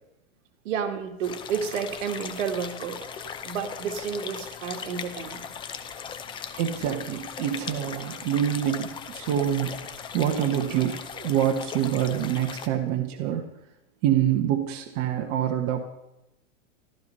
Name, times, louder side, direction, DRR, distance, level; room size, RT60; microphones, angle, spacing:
voice 1, 0.6-3.1 3.4-5.5, right 7 dB, 65° right, 5 dB, 2.2 m, -31 dB
sound 1, 1.2-12.7, left 7 dB, 10° left, 0.5 m, -38 dB
voice 2, 6.6-9.9 10.1-13.5 14.0-15.8, right 10 dB, 35° right, 4 dB, 1.3 m, -26 dB
14.5 x 12.5 x 5.5 m, 0.91 s
supercardioid pair, 145°, 41 cm